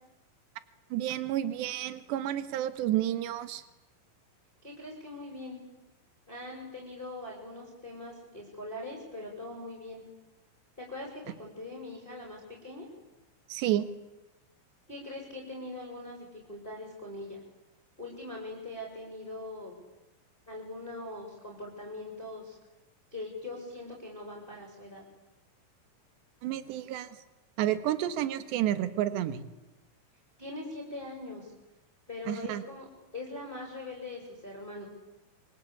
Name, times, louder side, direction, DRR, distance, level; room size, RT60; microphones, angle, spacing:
voice 1, 0.9-3.6 13.5-13.9 26.4-27.2 27.6-29.4 32.3-32.6, right 12 dB, 70° right, 11 dB, 3.4 m, -30 dB
voice 2, 4.6-5.6 6.3-10.0 10.8-12.9 14.9-17.4 18.0-19.7 20.5-22.6 23.1-25.0 30.4-31.5 32.1-32.9 33.1-34.8, left 2 dB, 10° left, -1 dB, 5.8 m, -42 dB
26.5 x 25.5 x 8.6 m, 0.99 s
omnidirectional pair, 5.7 m